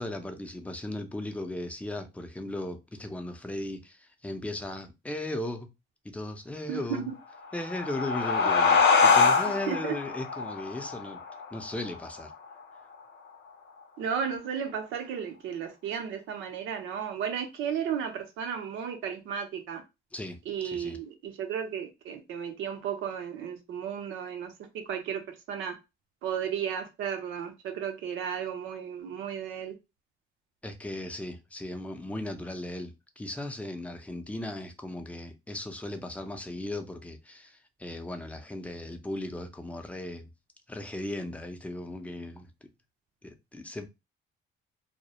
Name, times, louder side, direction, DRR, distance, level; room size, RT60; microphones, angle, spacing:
voice 1, 0.0-5.7 6.0-7.1 7.5-11.2 11.5-12.3 20.1-20.4 20.6-21.0 30.6-40.3 40.7-42.7 43.2-43.9, left 1 dB, 5° left, 0.5 m, -37 dB
voice 2, 6.7-7.1 9.7-9.9 14.0-19.8 20.5-25.8 26.2-29.7, right 8 dB, 85° right, 0.6 m, -34 dB
sound 1, 7.4-12.6, left 5 dB, 60° left, 0.5 m, -25 dB
2.3 x 2.0 x 2.8 m
cardioid pair, 90°, 20 cm